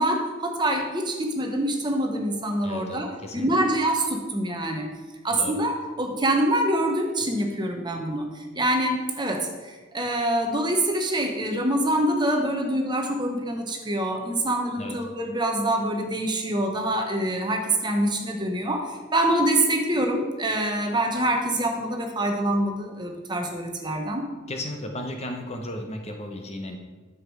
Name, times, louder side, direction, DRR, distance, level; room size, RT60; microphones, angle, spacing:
voice 1, 0.0-4.9 5.2-8.3 8.5-24.2, right 1 dB, 20° right, 3 dB, 1.0 m, -25 dB
voice 2, 2.6-3.6 5.3-5.6 14.8-15.0 24.5-26.8, left 1 dB, 30° left, 4 dB, 0.9 m, -35 dB
9.5 x 7.2 x 4.8 m, 1.3 s
head